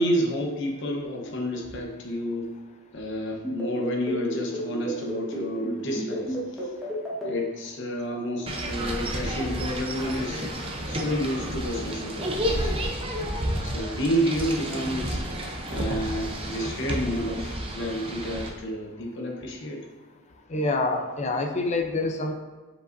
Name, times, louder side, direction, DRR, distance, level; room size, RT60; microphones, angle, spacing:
voice 1, 0.0-2.5 2.9-6.7 7.2-10.5 10.9-13.0 13.6-15.2 15.7-19.8, equal, 55° left, 0 dB, 1.0 m, -30 dB
sound 1, 3.4-7.3, right 1 dB, ahead, 1.3 m, -32 dB
sound 2, 8.5-18.5, right 1 dB, 25° right, 0.6 m, -31 dB
voice 2, 20.5-22.3, left 2 dB, 30° left, 4 dB, 0.5 m, -26 dB
7.4 x 5.0 x 2.6 m, 1.3 s
head